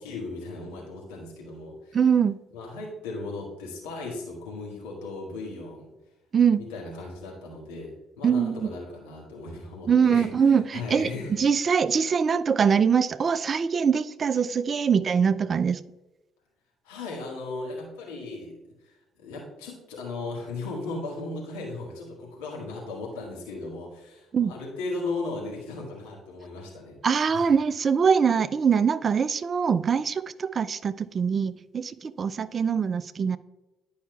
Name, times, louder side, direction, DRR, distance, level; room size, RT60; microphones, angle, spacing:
voice 1, 0.0-2.0 2.5-5.9 6.6-11.4 16.8-27.5, left 3 dB, 70° left, 1.7 m, -37 dB
voice 2, 1.9-2.4 6.3-6.6 8.2-8.6 9.9-11.1 11.4-15.8 24.3-24.5 27.0-33.4, right 6 dB, 40° right, 0.3 m, -23 dB
10.5 x 5.5 x 2.3 m
figure-of-eight pair, 50°, 0 cm